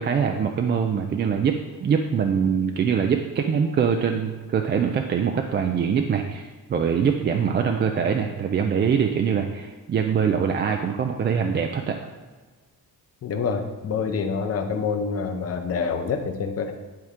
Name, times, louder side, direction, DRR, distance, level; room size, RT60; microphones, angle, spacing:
voice 1, 0.0-12.0, right 7 dB, 30° right, 4 dB, 0.4 m, -23 dB
voice 2, 13.2-16.7, left 5 dB, 40° left, 6 dB, 0.8 m, -27 dB
10.5 x 4.7 x 3.6 m, 1.3 s
cardioid pair, 175°, 36 cm